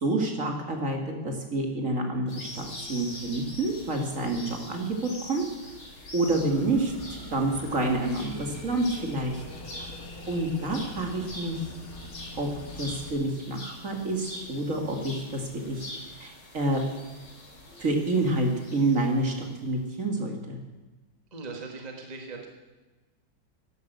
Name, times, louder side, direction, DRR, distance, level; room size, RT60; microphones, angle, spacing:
voice 1, 0.0-5.0 5.2-5.4 6.1-6.9 7.3-9.4 10.3-11.6 12.4-12.5 12.8-15.9 16.2-16.8 17.8-20.6, right 2 dB, 45° right, 3 dB, 2.4 m, -28 dB
sound 1, 2.3-19.6, left 1 dB, 65° left, 3.5 m, -44 dB
sound 2, 6.3-13.1, left 2 dB, 50° left, 2.6 m, -43 dB
voice 2, 21.3-22.5, right 3 dB, 25° right, 2 dB, 1.5 m, -39 dB
12.0 x 11.0 x 8.1 m, 1.2 s
omnidirectional pair, 2.0 m